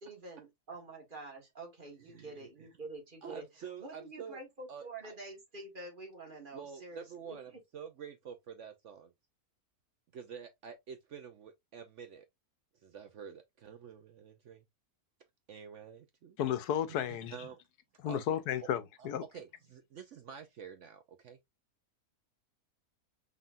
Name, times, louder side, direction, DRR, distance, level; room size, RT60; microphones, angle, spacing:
voice 1, 0.0-3.4 3.8-7.4, right 2 dB, 35° right, 1.5 m, -47 dB
voice 2, 2.0-2.7 3.2-4.4 4.7-5.1 6.5-9.1 10.1-12.3 12.8-14.6 15.5-16.4 17.0-17.6 18.1-18.4 19.0-19.1 19.3-21.4, right 7 dB, 65° right, 0.8 m, -48 dB
voice 3, 16.4-17.3 18.0-19.2, left 9 dB, 85° left, 1.2 m, -33 dB
5.6 x 3.6 x 2.5 m
omnidirectional pair, 1.6 m